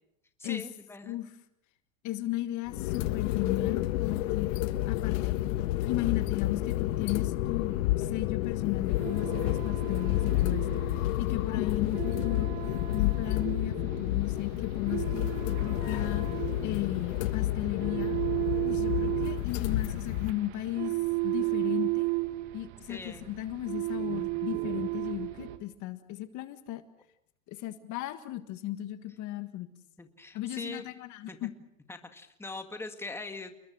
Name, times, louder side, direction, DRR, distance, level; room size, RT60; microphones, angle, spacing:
voice 1, 0.4-1.2 11.3-11.5 22.9-23.3 30.0-30.9 31.3-31.5 31.9-33.6, left 2 dB, 5° left, 6 dB, 1.9 m, -42 dB
voice 2, 2.0-4.5 4.8-5.4 5.9-12.5 12.9-16.3 16.6-18.2 18.6-21.0 21.2-22.1 22.5-26.8 27.5-29.7 30.3-31.5, left 14 dB, 45° left, 10 dB, 1.6 m, -35 dB
sound 1, 2.7-20.3, left 16 dB, 70° left, 1.5 m, -30 dB
sound 2, 8.9-25.6, right 21 dB, 60° right, 2.1 m, -34 dB
29.5 x 21.0 x 6.2 m, 0.76 s
supercardioid pair, 125°, 41 cm